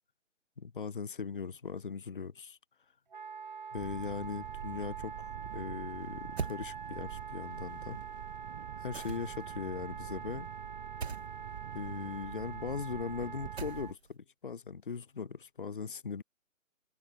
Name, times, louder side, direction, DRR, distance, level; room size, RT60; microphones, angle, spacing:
voice 1, 0.6-2.6 3.7-8.0 8.8-10.5 11.7-16.2, left 5 dB, 40° left, 0.8 m, -39 dB
Wind instrument woodwind instrument, 3.1-13.9, right 6 dB, 35° right, 1.5 m, -45 dB
sound 1, 3.7-13.9, right 13 dB, 15° right, 2.6 m, -46 dB
sound 2, 6.4-6.6 8.9-9.5 11.0-11.3 13.6-14.1, right 5 dB, 55° right, 2.7 m, -39 dB
hypercardioid pair, 175°, 39 cm